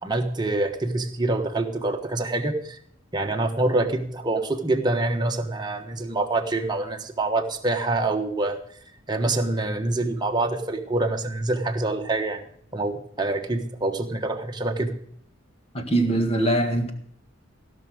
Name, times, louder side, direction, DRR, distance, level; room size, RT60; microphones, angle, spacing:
voice 1, 0.0-2.8 3.1-8.6 9.1-12.4 12.7-14.9, right 2 dB, 20° right, 1.3 m, -26 dB
voice 2, 15.7-16.9, right 1 dB, 30° left, 1.7 m, -22 dB
16.5 x 6.1 x 7.9 m
head